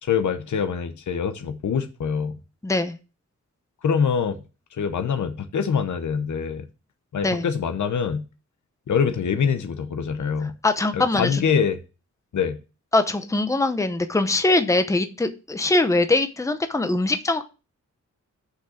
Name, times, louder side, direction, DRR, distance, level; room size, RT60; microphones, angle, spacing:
voice 1, 0.0-2.4 3.8-4.4 4.7-6.7 7.1-8.2 8.9-10.5 10.9-11.8 12.3-12.6, left 6 dB, 80° left, 0.9 m, -24 dB
voice 2, 2.6-3.0 7.2-7.5 10.6-11.4 12.9-17.4, left 2 dB, 10° left, 0.7 m, -22 dB
6.3 x 5.7 x 7.0 m
wide cardioid pair, 180°, 30 cm